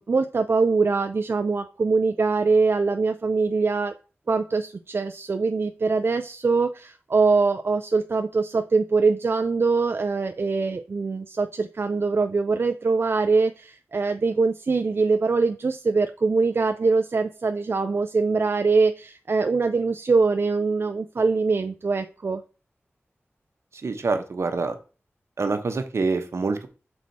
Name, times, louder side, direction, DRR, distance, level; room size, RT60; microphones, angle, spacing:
voice 1, 0.0-3.9 4.3-22.4, right 4 dB, 55° right, 7 dB, 0.4 m, -23 dB
voice 2, 23.7-24.8 25.4-26.7, right 4 dB, 75° right, 7 dB, 1.0 m, -26 dB
6.3 x 4.2 x 4.1 m, 0.35 s
wide cardioid pair, 85°, 5 cm